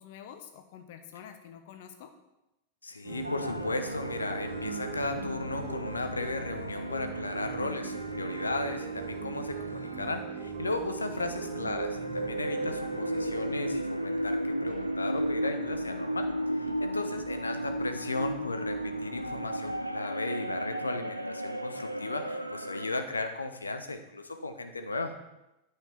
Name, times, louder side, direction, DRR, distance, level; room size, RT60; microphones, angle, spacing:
voice 1, 0.0-2.1 11.0-11.3, left 9 dB, 50° left, 7 dB, 1.0 m, -48 dB
voice 2, 2.8-16.3 16.6-25.1, left 2 dB, 80° left, 7 dB, 0.9 m, -35 dB
sound 1, 3.0-13.6, right 5 dB, 65° right, 1.5 m, -39 dB
sound 2, 3.2-19.8, right 3 dB, 45° right, 2.0 m, -53 dB
sound 3, 3.2-10.3 11.1-22.9, equal, 90° right, 0.5 m, -35 dB
9.0 x 5.0 x 5.8 m, 0.94 s
figure-of-eight pair, 90°, 0 cm